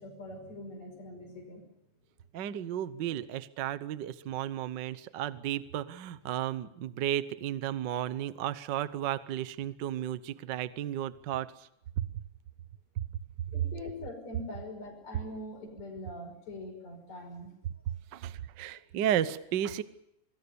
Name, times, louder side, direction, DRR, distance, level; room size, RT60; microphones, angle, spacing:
voice 1, 0.0-1.7 13.5-17.5, left 1 dB, 65° left, 4 dB, 6.7 m, -43 dB
voice 2, 2.3-11.5 12.0-12.1 13.0-13.1 18.1-19.8, right 11 dB, 80° right, 14 dB, 1.0 m, -33 dB
26.0 x 21.0 x 7.0 m, 0.80 s
omnidirectional pair, 3.4 m